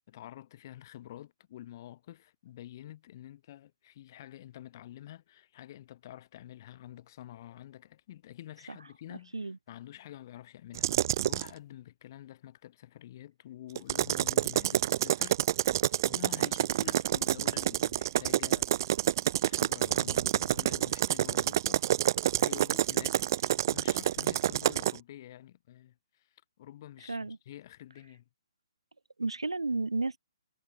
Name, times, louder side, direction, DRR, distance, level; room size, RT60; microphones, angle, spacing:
voice 1, 0.1-18.7 19.0-19.1 19.4-21.8 22.3-28.2, left 13 dB, 40° left, 4.5 m, -48 dB
sound 1, 10.7-11.5 13.8-25.0, right 12 dB, 45° right, 1.3 m, -28 dB
voice 2, 29.2-30.2, right 3 dB, 80° right, 3.7 m, -32 dB
figure-of-eight pair, 130°, 3 cm